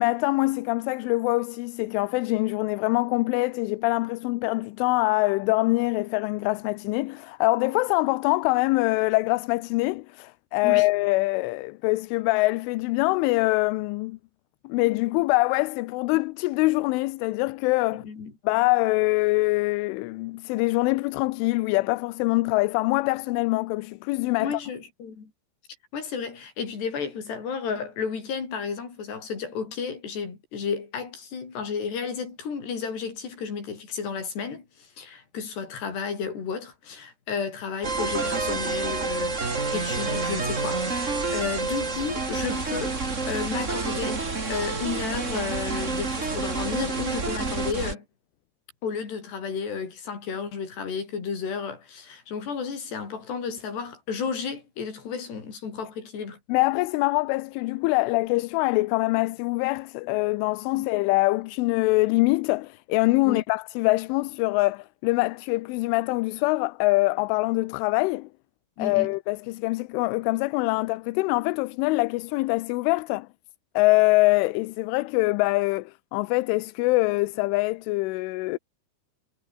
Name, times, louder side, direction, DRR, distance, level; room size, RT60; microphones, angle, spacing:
voice 1, 0.0-14.2 14.6-18.0 18.4-24.6 56.5-68.3 68.8-73.3 73.8-78.6, left 22 dB, 85° left, 3.2 m, -24 dB
voice 2, 17.9-18.3 24.4-25.3 25.9-48.0 48.8-56.4 60.8-60.9 63.3-63.4 68.8-69.1, left 6 dB, 60° left, 7.6 m, -32 dB
sound 1, 37.8-47.9, right 3 dB, 25° right, 1.9 m, -28 dB
omnidirectional pair, 5.6 m